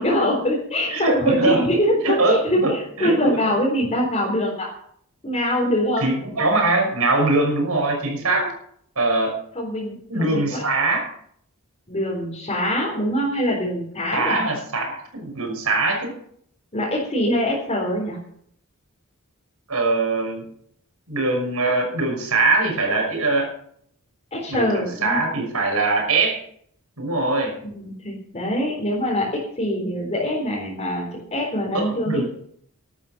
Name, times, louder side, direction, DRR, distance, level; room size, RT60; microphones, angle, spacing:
voice 1, 0.0-4.7 5.2-6.2 8.3-8.5 9.5-10.6 11.9-14.4 16.7-18.2 24.3-25.2 27.6-32.2, equal, 30° left, -4 dB, 4.2 m, -24 dB
voice 2, 0.9-1.7 2.0-3.4 6.0-8.5 9.0-9.4 10.1-11.1 14.1-16.1 19.7-20.4 21.1-23.5 24.5-26.4 27.0-27.5 31.7-32.2, right 2 dB, 80° right, 3 dB, 6.1 m, -22 dB
13.0 x 12.5 x 6.0 m, 0.66 s
head